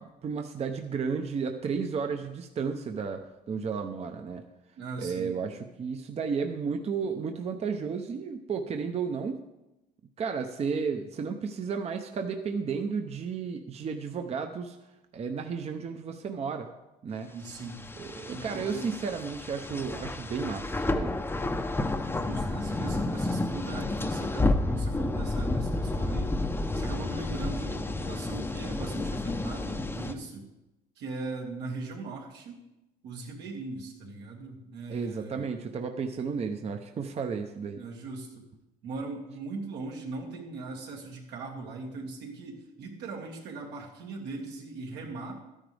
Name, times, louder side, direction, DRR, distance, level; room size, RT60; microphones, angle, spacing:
voice 1, 0.0-4.4 5.0-9.4 10.2-14.8 15.1-16.7 17.0-17.3 18.0-21.1 34.9-37.8, right 5 dB, 40° right, 5 dB, 0.7 m, -33 dB
voice 2, 4.8-5.4 17.3-17.8 18.3-18.9 22.1-26.3 26.7-30.4 31.0-32.6 33.0-35.4 37.7-38.5 38.8-45.4, right 3 dB, 85° right, 0 dB, 2.1 m, -39 dB
sound 1, 17.5-30.1, left 2 dB, 15° left, 0.7 m, -31 dB
12.5 x 10.0 x 3.4 m, 0.97 s
cardioid pair, 110°, 17 cm